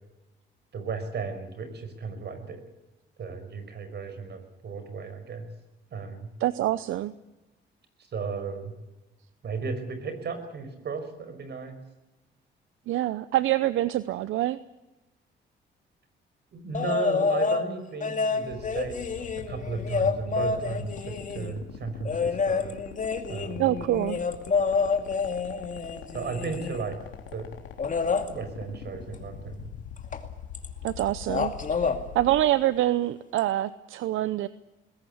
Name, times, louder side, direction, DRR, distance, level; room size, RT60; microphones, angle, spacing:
voice 1, 0.7-2.6 3.2-5.5 5.9-6.3 8.0-8.7 9.4-11.8 16.5-19.0 19.4-22.7 23.3-23.7 26.1-27.0 27.3-27.5 27.9-28.0 28.3-29.7, right 4 dB, 60° right, 9 dB, 5.6 m, -35 dB
voice 2, 6.4-7.1 12.9-14.6 23.6-24.2 30.8-31.5 32.1-34.5, right 14 dB, 80° right, 15 dB, 0.8 m, -25 dB
sound 1, 16.7-17.6 18.0-21.5 22.0-26.9 27.8-28.3 30.1-30.2 30.5-31.0 31.3-32.0 33.4-33.5, left 5 dB, 40° left, 2.5 m, -28 dB
sound 2, 18.5-32.5, left 10 dB, 85° left, 3.5 m, -42 dB
21.0 x 17.0 x 9.7 m, 1.0 s
cardioid pair, 90°, 20 cm